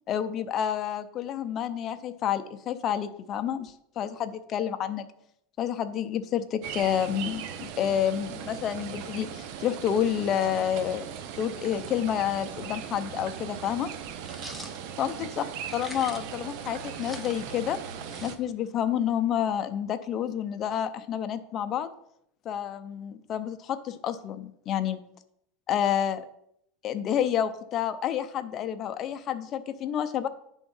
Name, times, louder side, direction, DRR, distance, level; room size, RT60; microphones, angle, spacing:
voice 1, 0.1-5.1 5.6-11.1 11.4-13.9 15.0-15.4 15.7-17.8 18.2-21.9 22.4-25.0 25.7-26.2 26.8-30.3, left 9 dB, 35° left, 10 dB, 0.6 m, -29 dB
sound 1, 6.6-18.4, right 8 dB, 55° right, 0.7 m, -39 dB
sound 2, 14.3-14.8 15.6-16.4 16.7-18.7, equal, 5° right, 0.9 m, -44 dB
9.5 x 3.6 x 5.4 m, 0.75 s
supercardioid pair, 145°, 0 cm